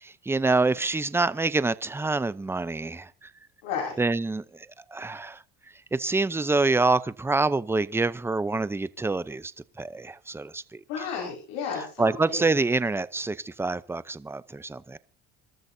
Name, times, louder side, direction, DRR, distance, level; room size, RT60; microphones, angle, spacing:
voice 1, 0.0-3.3 4.0-5.4 5.9-9.5 9.8-10.8 12.0-15.0, right 3 dB, 10° right, 0.6 m, -26 dB
voice 2, 3.6-4.0 10.9-12.5, left 6 dB, 80° left, 5.3 m, -33 dB
27.5 x 13.0 x 2.7 m
supercardioid pair, 110°, 29 cm